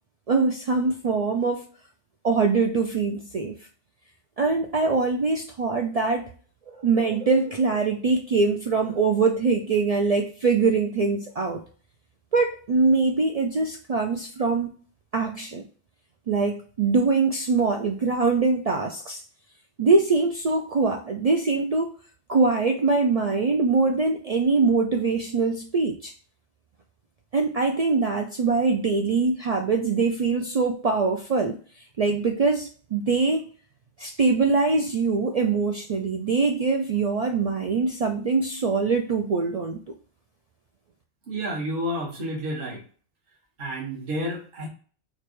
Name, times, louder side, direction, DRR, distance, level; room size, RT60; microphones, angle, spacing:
voice 1, 0.3-1.7 2.2-3.6 4.4-6.3 6.7-11.6 12.3-14.7 15.1-15.6 16.3-19.2 19.8-21.9 22.3-26.1 27.3-31.6 32.0-33.4 34.0-39.8, right 4 dB, 75° right, 0.3 m, -23 dB
voice 2, 41.3-42.8 43.6-44.7, equal, 50° right, 1.5 m, -30 dB
4.6 x 2.3 x 3.0 m
omnidirectional pair, 1.2 m